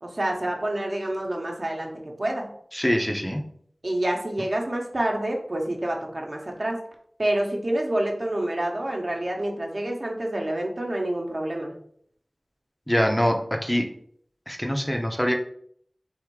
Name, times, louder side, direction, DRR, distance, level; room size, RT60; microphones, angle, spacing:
voice 1, 0.0-1.9 2.2-2.5 3.8-6.8 7.2-11.7, right 1 dB, 55° right, 1 dB, 0.9 m, -27 dB
voice 2, 2.7-3.4 12.9-13.9 14.5-15.3, equal, 10° left, 2 dB, 0.6 m, -24 dB
3.5 x 2.6 x 4.6 m, 0.63 s
wide cardioid pair, 45°, 0 cm